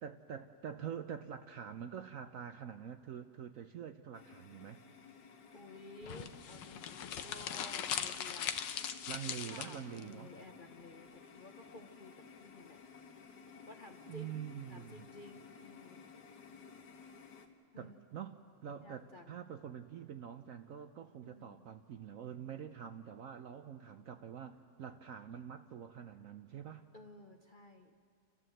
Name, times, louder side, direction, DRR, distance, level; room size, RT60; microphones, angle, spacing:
voice 1, 0.0-4.8 9.1-10.3 14.1-15.1 17.8-26.8, right 8 dB, 65° right, 8 dB, 0.9 m, -46 dB
sound 1, 4.1-17.5, left 5 dB, 70° left, 1.9 m, -56 dB
voice 2, 5.5-8.5 9.4-12.8 13.7-14.4 14.7-16.0 17.7-18.0 18.8-19.4 21.2-21.7 26.9-27.9, left 2 dB, 40° left, 4 dB, 0.7 m, -54 dB
sound 2, 6.0-10.0, left 9 dB, 85° left, 1.5 m, -40 dB
29.5 x 13.0 x 7.8 m, 2.3 s
omnidirectional pair, 1.9 m